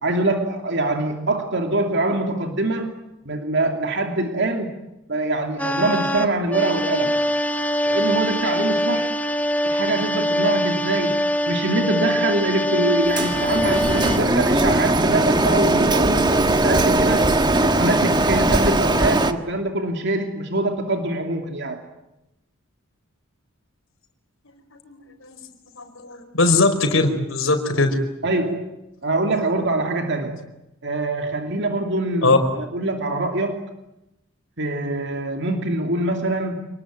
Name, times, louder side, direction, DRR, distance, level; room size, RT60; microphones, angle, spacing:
voice 1, 0.0-2.9 3.3-4.7 5.1-7.2 7.9-9.1 9.6-17.2 17.6-21.8 28.2-28.7 29.0-30.4 30.8-33.6 34.6-36.6, right 2 dB, 55° right, 4 dB, 2.6 m, -24 dB
sound 1, 5.6-14.2, equal, 5° left, 1.3 m, -23 dB
Printer, 13.1-19.3, right 2 dB, 20° right, 1.4 m, -19 dB
voice 2, 24.8-25.4 25.7-28.0 32.2-32.4, left 3 dB, 60° left, 5 dB, 4.7 m, -20 dB
28.5 x 21.0 x 9.1 m, 0.92 s
head